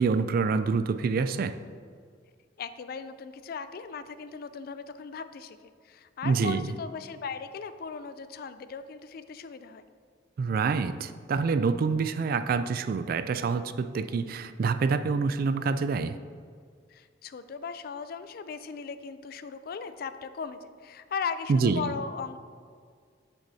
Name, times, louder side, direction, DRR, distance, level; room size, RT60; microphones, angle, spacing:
voice 1, 0.0-1.6 6.2-6.7 10.4-16.2 21.5-21.9, right 4 dB, 50° right, 12 dB, 0.3 m, -26 dB
voice 2, 2.6-9.8 16.9-22.4, left 5 dB, 55° left, 12 dB, 0.3 m, -38 dB
8.1 x 7.0 x 2.7 m, 2.1 s
head